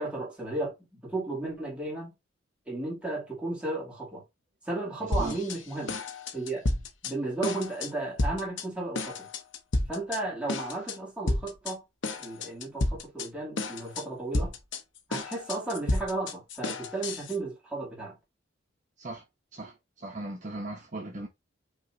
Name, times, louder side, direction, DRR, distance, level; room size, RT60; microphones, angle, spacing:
voice 1, 0.0-2.1 2.7-4.2 4.7-6.0 6.3-6.7 7.0-9.3 9.9-11.8 12.1-14.5 15.1-18.2, right 2 dB, 5° right, 2.1 m, -34 dB
voice 2, 5.0-5.4 19.0-19.2 19.5-21.3, right 2 dB, 40° right, 0.9 m, -38 dB
sound 1, 5.1-5.6 5.9-7.1 7.4-7.9 8.2-8.6 8.9-10.2 10.5-11.0 11.3-11.7 12.0-13.3 13.6-14.0 14.3-17.4, left 2 dB, 70° left, 0.9 m, -31 dB
5.5 x 3.0 x 2.7 m
head